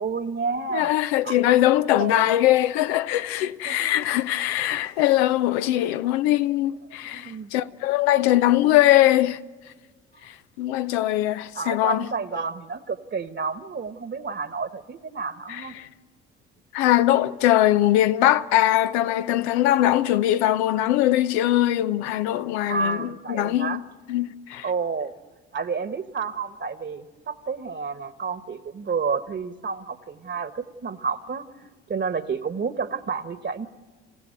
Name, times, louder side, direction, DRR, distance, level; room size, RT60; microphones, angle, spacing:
voice 1, 0.0-0.9 1.2-1.6 1.8-2.4 3.6-4.0 4.6-4.8 7.1-7.5 11.5-15.7 22.7-23.8 24.6-25.1 25.5-31.5 31.9-33.7, right 5 dB, 35° right, 1.5 m, -30 dB
voice 2, 0.7-9.4 10.2-12.1 15.5-15.9 16.7-23.8 24.1-24.7, left 14 dB, 75° left, 0.7 m, -21 dB
27.5 x 15.5 x 7.8 m
hypercardioid pair, 55°, 33 cm